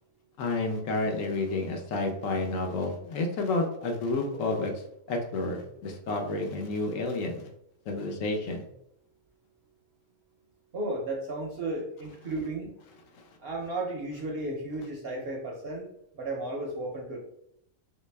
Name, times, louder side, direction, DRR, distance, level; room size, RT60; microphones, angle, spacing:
voice 1, 0.4-4.7 5.1-7.5 7.9-8.6, left 2 dB, 75° left, 3 dB, 1.0 m, -30 dB
voice 2, 10.7-12.7 13.4-17.2, right 2 dB, 60° right, 1 dB, 0.6 m, -34 dB
3.1 x 2.7 x 3.2 m, 0.76 s
omnidirectional pair, 1.4 m